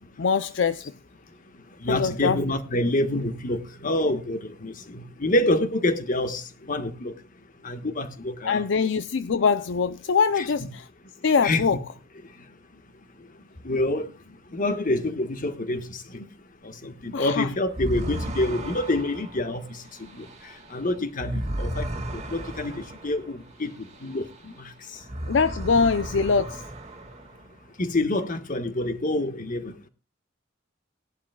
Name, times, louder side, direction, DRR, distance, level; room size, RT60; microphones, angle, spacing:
voice 1, 0.2-0.9 1.9-2.4 8.4-10.8 11.2-11.8 17.1-17.5 25.3-26.6, left 5 dB, 65° left, 0.5 m, -23 dB
voice 2, 1.8-7.1 7.6-8.6 10.4-10.5 11.4-11.6 13.6-14.1 14.5-15.9 16.1-16.2 16.8-19.6 20.0-20.2 20.7-24.5 27.8-29.7, left 1 dB, 45° left, 1.4 m, -27 dB
sound 1, 17.7-24.6 24.9-27.6, right 1 dB, 35° right, 2.0 m, -35 dB
19.5 x 11.5 x 2.3 m
head